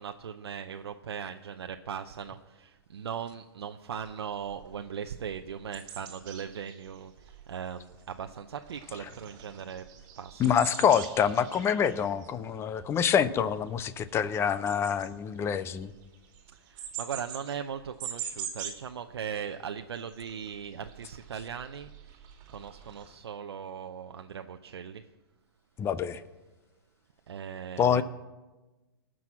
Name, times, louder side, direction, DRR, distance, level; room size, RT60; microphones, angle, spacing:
voice 1, 0.0-9.9 10.2-10.6 16.5-25.0 27.3-28.0, right 7 dB, 80° right, 6 dB, 0.7 m, -39 dB
sound 1, 4.0-4.1 4.5-4.7 5.1-8.4 8.6-18.9 19.2-19.4 19.6-23.1, right 9 dB, 35° right, 2.2 m, -44 dB
voice 2, 10.4-15.9 25.8-26.2 27.8-28.0, left 8 dB, 20° left, 15 dB, 0.5 m, -26 dB
18.5 x 6.2 x 7.3 m, 1.2 s
hypercardioid pair, 130°, 13 cm